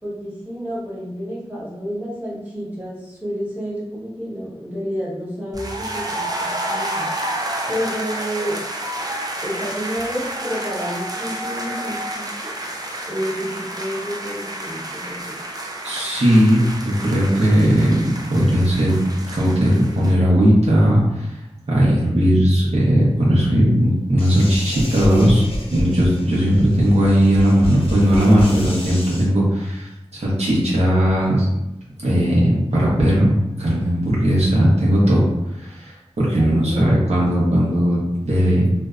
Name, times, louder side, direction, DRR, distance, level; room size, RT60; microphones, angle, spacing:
voice 1, 0.0-7.1 7.7-8.6 9.4-12.5 13.0-15.4 36.3-36.8, equal, 15° right, -8 dB, 1.0 m, -30 dB
sound 1, 5.5-20.1, right 1 dB, 35° right, 0.3 m, -30 dB
voice 2, 15.8-18.9 19.3-21.3 21.7-25.4 25.7-31.4 32.0-35.2 35.6-38.6, equal, 75° right, -7 dB, 0.7 m, -17 dB
sound 2, 24.2-29.2, equal, 60° left, 0.6 m, -30 dB
2.6 x 2.1 x 2.3 m, 0.92 s
wide cardioid pair, 70°, 11 cm